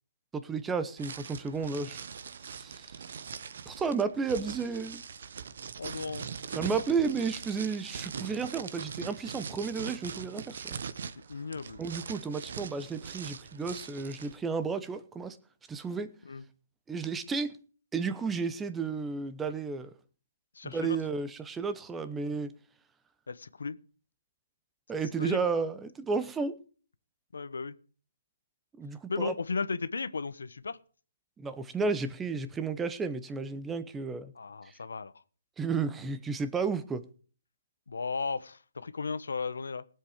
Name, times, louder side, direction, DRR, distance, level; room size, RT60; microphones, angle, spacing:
voice 1, 0.3-2.1 2.4-3.0 3.7-5.0 6.5-10.8 11.8-15.4 15.7-16.1 16.9-17.6 17.9-19.9 20.6-22.5 24.9-26.6 28.8-29.3 31.4-34.3 34.6-34.7 35.6-37.0, right 5 dB, 10° right, 0.9 m, -32 dB
sound 1, 1.0-14.4, right 6 dB, 55° right, 0.9 m, -42 dB
voice 2, 5.8-6.3 11.3-11.8 16.2-16.4 20.5-21.0 23.3-23.8 25.1-25.4 27.3-27.7 29.1-30.8 34.4-35.1 37.9-39.8, left 4 dB, 75° left, 1.1 m, -35 dB
18.5 x 7.8 x 5.0 m
hypercardioid pair, 160°, 0 cm